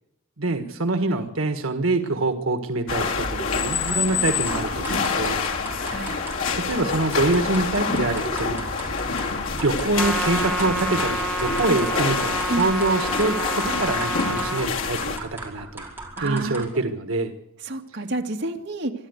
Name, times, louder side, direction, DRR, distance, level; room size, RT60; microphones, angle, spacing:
voice 1, 0.4-5.4 6.1-6.2 6.5-9.2 9.6-15.8 16.2-17.3, right 2 dB, 85° right, 7 dB, 1.6 m, -25 dB
sound 1, 2.9-15.2, left 5 dB, 80° left, 2.5 m, -27 dB
sound 2, 3.7-16.9, right 2 dB, 10° right, 5.0 m, -38 dB
Trumpet, 9.9-14.6, right 2 dB, 5° left, 2.0 m, -29 dB
voice 2, 16.2-16.7 17.6-18.9, right 2 dB, 60° right, 3 dB, 2.2 m, -29 dB
25.0 x 12.5 x 8.2 m, 0.84 s
head